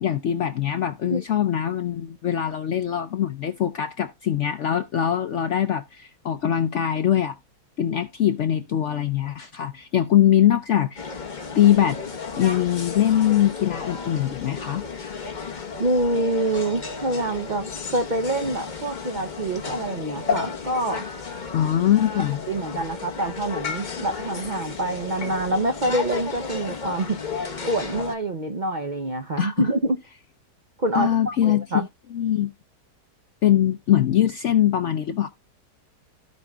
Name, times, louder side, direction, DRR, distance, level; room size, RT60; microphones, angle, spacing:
voice 1, 0.0-7.4 7.8-11.2 11.5-12.0 12.4-14.9 21.5-22.4 29.4-29.7 30.9-31.8 32.1-32.5 33.4-35.3, left 10 dB, 70° left, 0.7 m, -22 dB
sound 1, 11.0-28.2, left 5 dB, 30° left, 1.0 m, -33 dB
voice 2, 15.8-21.0 22.5-27.2 27.7-30.0 30.8-31.9, right 1 dB, 60° right, 0.4 m, -26 dB
16.0 x 5.3 x 2.3 m
omnidirectional pair, 1.9 m